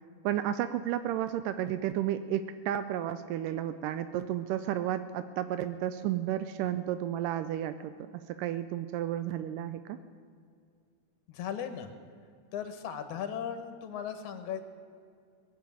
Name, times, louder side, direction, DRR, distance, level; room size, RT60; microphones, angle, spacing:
voice 1, 0.2-10.0, right 11 dB, 85° right, 11 dB, 2.2 m, -32 dB
voice 2, 11.3-11.9 12.5-14.6, left 8 dB, 70° left, 8 dB, 2.4 m, -37 dB
20.5 x 7.7 x 8.6 m, 2.2 s
omnidirectional pair, 3.7 m